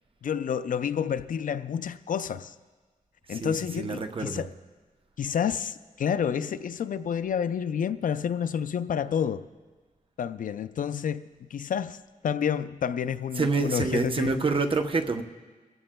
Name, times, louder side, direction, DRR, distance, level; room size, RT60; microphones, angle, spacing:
voice 1, 0.2-2.5 3.3-4.5 5.2-9.5 10.2-12.0 12.2-14.4, left 8 dB, 70° left, 0.4 m, -29 dB
voice 2, 3.3-4.4 13.4-15.2, right 3 dB, 40° right, 0.8 m, -27 dB
22.5 x 14.5 x 2.2 m
wide cardioid pair, 90°, 14 cm